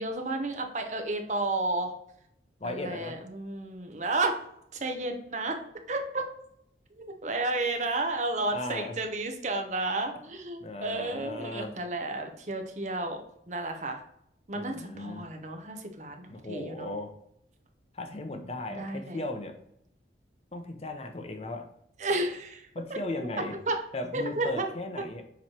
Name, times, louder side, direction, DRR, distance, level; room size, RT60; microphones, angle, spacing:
voice 1, 0.0-1.9 2.6-4.3 4.7-5.6 5.9-6.2 7.0-13.2 13.5-14.0 14.5-16.9 18.7-19.2 22.0-23.8 24.1-24.7, right 2 dB, 40° right, 4 dB, 0.9 m, -32 dB
voice 2, 2.6-3.2 8.5-9.0 10.6-11.7 14.5-15.2 16.3-17.1 17.9-19.6 20.5-21.7 22.7-23.6 23.9-25.2, left 2 dB, 35° left, 6 dB, 0.7 m, -36 dB
7.2 x 3.2 x 4.4 m, 0.73 s
head